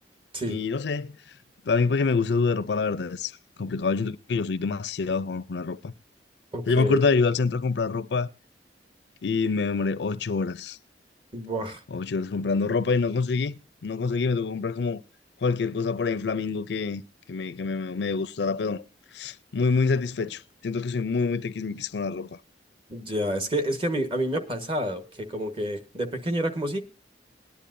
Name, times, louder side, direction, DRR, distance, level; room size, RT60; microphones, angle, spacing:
voice 1, 0.5-1.2 1.6-3.3 3.6-5.9 6.7-8.3 9.2-10.8 11.9-13.5 13.8-15.0 15.4-17.0 17.3-18.8 19.1-22.4, left 4 dB, 75° left, 0.5 m, -26 dB
voice 2, 6.5-7.0 11.3-11.8 22.9-26.8, right 1 dB, 30° right, 1.2 m, -29 dB
19.5 x 10.0 x 2.6 m
head